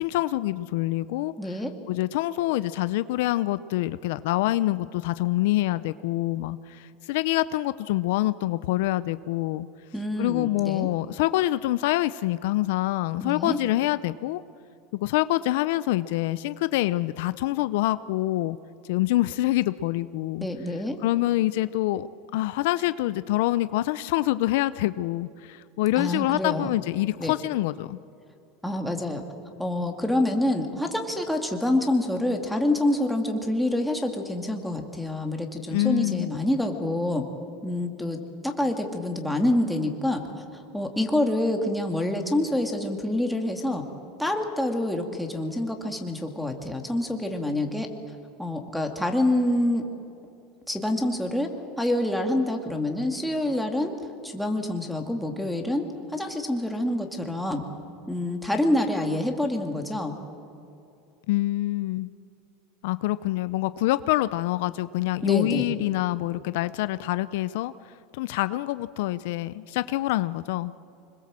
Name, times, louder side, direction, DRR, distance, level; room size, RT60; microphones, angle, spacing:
voice 1, 0.0-1.6 1.9-9.7 10.2-14.4 15.0-18.6 18.9-20.5 21.0-22.1 22.3-28.0 35.7-36.3 61.3-62.1 62.8-70.7, left 16 dB, 75° left, 15 dB, 0.5 m, -26 dB
voice 2, 1.4-1.7 9.9-10.9 13.2-13.6 20.4-21.0 26.0-26.7 27.2-27.3 28.6-29.2 29.6-37.2 37.6-38.2 38.4-40.2 40.5-43.8 44.2-47.9 48.4-49.8 50.7-51.5 51.8-53.9 54.2-55.9 56.1-57.6 58.1-60.1 65.2-65.7, left 1 dB, ahead, 2 dB, 2.2 m, -26 dB
25.5 x 21.0 x 7.6 m, 2.7 s
supercardioid pair, 140°, 0 cm